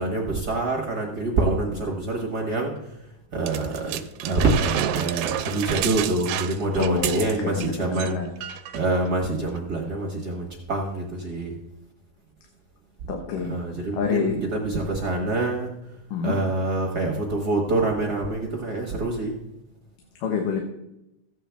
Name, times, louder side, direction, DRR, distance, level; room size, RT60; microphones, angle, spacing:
voice 1, 0.0-2.7 3.3-8.2 8.7-11.5 13.4-15.7 16.2-19.4, right 2 dB, 55° right, 1 dB, 1.1 m, -26 dB
sound 1, 3.5-7.7 7.9-8.1 8.4-8.8 9.6-9.7, right 11 dB, 80° right, 1.7 m, -30 dB
voice 2, 6.8-8.3 13.1-14.4 16.1-16.4 20.2-20.6, left 6 dB, 85° left, 2 dB, 2.7 m, -28 dB
15.0 x 9.3 x 3.4 m, 0.88 s
omnidirectional pair, 3.7 m